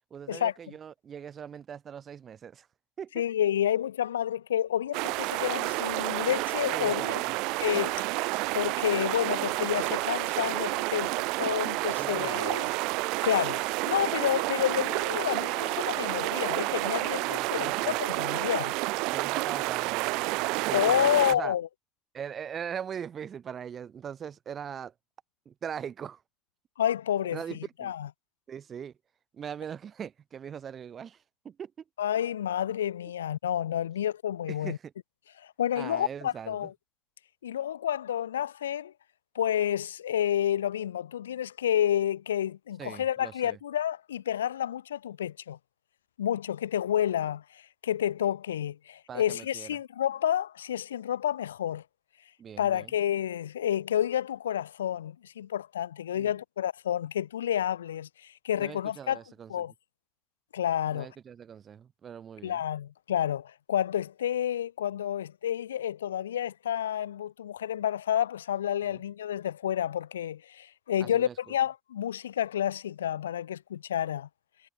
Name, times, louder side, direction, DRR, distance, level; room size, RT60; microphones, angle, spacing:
voice 1, 0.1-2.7 3.0-3.2 6.7-7.4 12.0-12.6 17.2-18.0 19.1-21.5 22.1-24.9 25.4-26.2 27.3-27.9 28.5-28.9 29.3-31.7 34.5-34.9 35.7-36.7 42.8-43.6 49.1-49.7 52.4-52.9 56.1-56.3 58.5-59.5 60.9-62.6 68.9-69.0 71.0-71.4, right 8 dB, 45° right, 7.8 m, -41 dB
voice 2, 3.2-7.2 7.6-8.2 8.5-11.1 11.4-12.7 13.2-18.7 20.7-21.7 26.8-27.4 27.8-28.1 32.0-34.8 35.4-36.7 37.4-38.9 39.4-45.6 46.2-51.8 52.6-59.2 59.5-59.7 60.5-61.1 62.4-74.3, left 10 dB, 85° left, 0.5 m, -29 dB
sound 1, 4.9-21.3, right 25 dB, 70° right, 0.3 m, -30 dB
hypercardioid pair, 55°, 0 cm